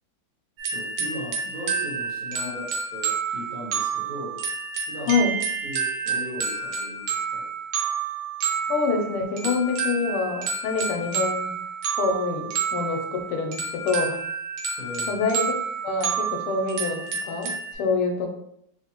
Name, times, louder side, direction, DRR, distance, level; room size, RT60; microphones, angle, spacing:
sound 1, 0.6-17.7, right 6 dB, 80° right, 1.6 m, -29 dB
voice 1, 0.7-4.4 4.9-5.1 5.6-7.4 14.8-15.2, left 1 dB, 50° right, -6 dB, 1.1 m, -38 dB
voice 2, 8.7-11.6 12.0-14.2 15.1-15.5 15.8-18.3, left 4 dB, 90° left, 3 dB, 1.6 m, -26 dB
4.0 x 2.5 x 2.9 m, 0.74 s
omnidirectional pair, 2.4 m